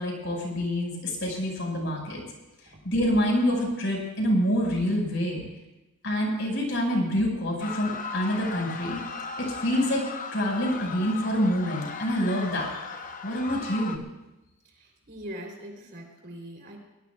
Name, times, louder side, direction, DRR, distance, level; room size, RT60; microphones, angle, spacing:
voice 1, 0.0-2.2 2.8-5.4 6.0-9.0 9.4-12.7 13.2-14.0, equal, 55° left, 0 dB, 5.2 m, -26 dB
sound 1, 7.6-14.0, left 5 dB, 35° left, 0.8 m, -37 dB
voice 2, 14.6-16.8, equal, 45° right, 1 dB, 3.3 m, -42 dB
22.5 x 19.0 x 2.3 m, 1.0 s
head